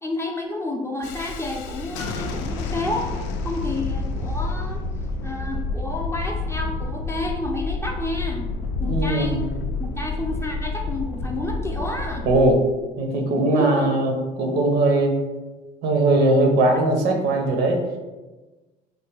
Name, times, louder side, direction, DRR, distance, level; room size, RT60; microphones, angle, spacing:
voice 1, 0.0-3.1 3.4-4.8 5.2-8.5 8.8-9.4 9.8-12.3 13.5-14.0, left 2 dB, 15° left, 0 dB, 0.5 m, -30 dB
Thunderstorm, 1.0-12.5, left 3 dB, 70° left, 0.4 m, -29 dB
voice 2, 8.8-9.5 12.2-12.6 13.0-15.2 15.8-17.8, right 2 dB, 60° right, 3 dB, 0.7 m, -20 dB
3.3 x 2.1 x 3.2 m, 1.2 s
supercardioid pair, 80°, 20 cm